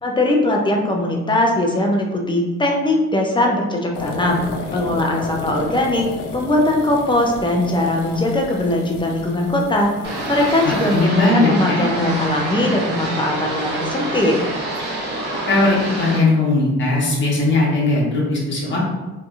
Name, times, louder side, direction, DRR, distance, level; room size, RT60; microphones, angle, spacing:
voice 1, 0.0-4.4 4.7-6.1 6.3-9.9 10.3-14.4, left 1 dB, 15° left, 1 dB, 0.5 m, -20 dB
sound 1, 3.9-11.0, left 3 dB, 70° left, 0.5 m, -32 dB
sound 2, 10.0-16.2, right 1 dB, 35° right, 1.0 m, -26 dB
voice 2, 10.6-11.8 15.4-18.8, left 2 dB, 40° left, -5 dB, 1.0 m, -18 dB
2.7 x 2.5 x 2.4 m, 1.1 s
cardioid pair, 90°, 30 cm